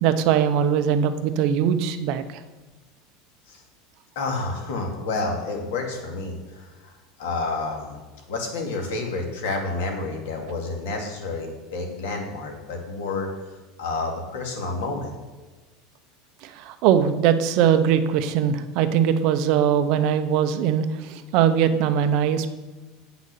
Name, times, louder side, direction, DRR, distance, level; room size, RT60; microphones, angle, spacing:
voice 1, 0.0-2.2 16.4-22.5, right 8 dB, 50° right, 9 dB, 0.7 m, -21 dB
voice 2, 4.2-8.0 8.3-13.3 13.8-15.1, left 3 dB, 80° left, 2 dB, 2.4 m, -29 dB
8.5 x 6.1 x 6.9 m, 1.3 s
supercardioid pair, 170°, 0 cm